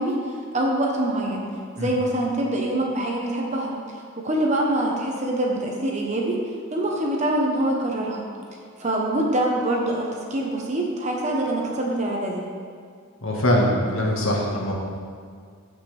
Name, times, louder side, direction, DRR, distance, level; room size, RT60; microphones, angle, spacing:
voice 1, 0.0-1.5 1.7-8.3 8.8-12.5, right 1 dB, 35° right, -1 dB, 1.1 m, -25 dB
voice 2, 13.2-14.7, left 1 dB, 75° left, -2 dB, 1.7 m, -22 dB
15.5 x 5.9 x 3.5 m, 2.1 s
head